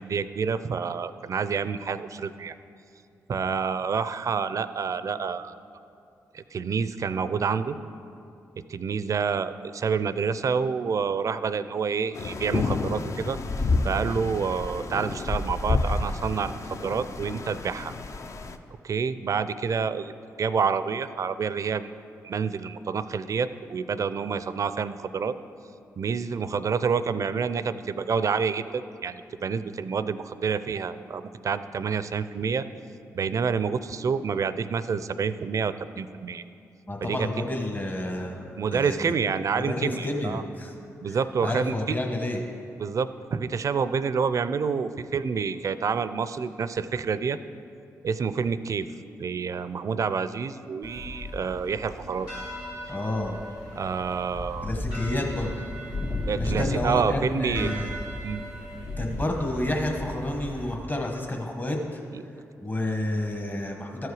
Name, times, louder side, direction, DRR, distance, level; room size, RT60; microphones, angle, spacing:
voice 1, 0.0-2.5 3.3-5.5 6.3-7.8 8.6-13.4 13.8-17.9 18.8-20.1 20.4-21.9 22.2-25.4 26.0-32.7 33.1-36.4 37.0-37.3 38.6-40.4 41.0-41.7 42.8-47.4 48.0-48.9 49.2-52.3 53.7-54.7 56.3-57.7 58.2-58.4, right 6 dB, 55° right, 13 dB, 0.4 m, -28 dB
sound 1, 12.1-18.6, left 3 dB, 50° left, 0.6 m, -29 dB
voice 2, 36.9-39.1 39.6-40.7 41.0-42.4 52.9-53.4 54.6-55.5 56.3-57.9 59.0-62.0 62.6-64.1, left 1 dB, 25° left, 1 dB, 1.2 m, -30 dB
sound 2, 50.8-60.7, left 1 dB, 75° left, 2.0 m, -35 dB
13.5 x 4.7 x 4.8 m, 2.5 s
supercardioid pair, 50°, 7 cm